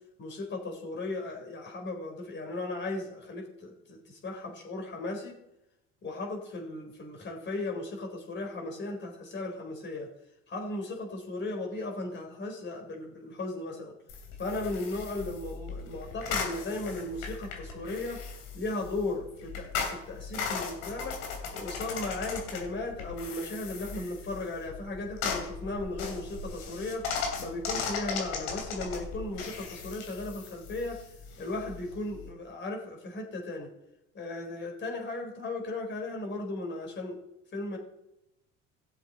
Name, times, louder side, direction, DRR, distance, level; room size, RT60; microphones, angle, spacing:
voice 1, 0.2-5.3 6.0-10.1 10.5-13.9 14.4-18.2 18.5-21.1 21.5-27.0 27.4-31.0 31.4-33.7 34.1-37.2 37.5-37.8, left 2 dB, 35° left, 1 dB, 4.1 m, -36 dB
sound 1, 14.1-32.3, left 5 dB, 85° left, 3.2 m, -38 dB
18.0 x 7.3 x 4.1 m, 0.88 s
supercardioid pair, 100°, 30 cm